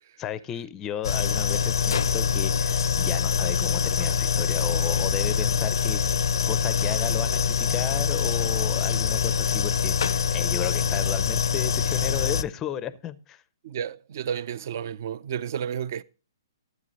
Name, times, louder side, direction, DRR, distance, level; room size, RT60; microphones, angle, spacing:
voice 1, 0.2-6.1 6.5-13.4, left 10 dB, 15° left, 0.5 m, -34 dB
sound 1, 1.0-12.4, left 6 dB, 70° left, 0.5 m, -24 dB
voice 2, 13.6-16.0, right 8 dB, 45° right, 0.5 m, -32 dB
12.5 x 9.1 x 3.0 m
hypercardioid pair, 165°, 2 cm